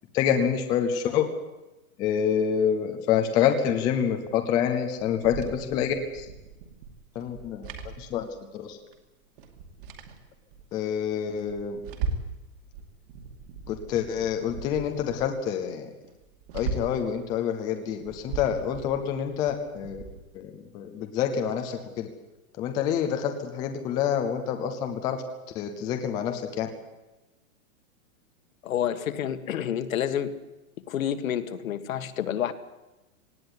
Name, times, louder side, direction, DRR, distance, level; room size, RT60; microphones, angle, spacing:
voice 1, 0.1-1.3 2.0-6.3 7.2-7.7 8.0-8.3 8.5-8.8 10.7-11.8 13.7-15.9 16.5-20.0 20.3-22.1 22.6-25.2 25.6-26.7, left 8 dB, 10° left, 5 dB, 0.6 m, -27 dB
sound 1, 5.0-8.7 8.9-9.0 9.4-10.6 11.1-12.4 12.7-15.3 15.7-15.8 16.0-17.1 17.7-20.2, right 4 dB, 35° right, 2.5 m, -38 dB
voice 2, 28.6-30.4 30.9-32.5, left 9 dB, 65° left, 10 dB, 1.8 m, -29 dB
18.5 x 16.5 x 9.8 m, 1.0 s
supercardioid pair, 175°, 43 cm